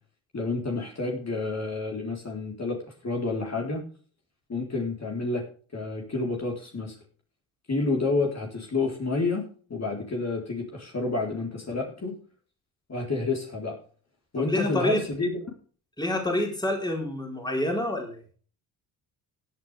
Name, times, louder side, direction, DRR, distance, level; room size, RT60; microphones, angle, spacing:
voice 1, 0.3-2.8 3.0-3.8 4.5-5.4 5.7-7.0 7.7-12.1 12.9-13.8 14.3-15.4, left 3 dB, 35° left, 0 dB, 3.9 m, -29 dB
voice 2, 14.4-15.0 16.0-18.2, left 1 dB, 10° left, 1 dB, 4.4 m, -27 dB
16.5 x 8.9 x 3.4 m, 0.43 s
supercardioid pair, 65°, 48 cm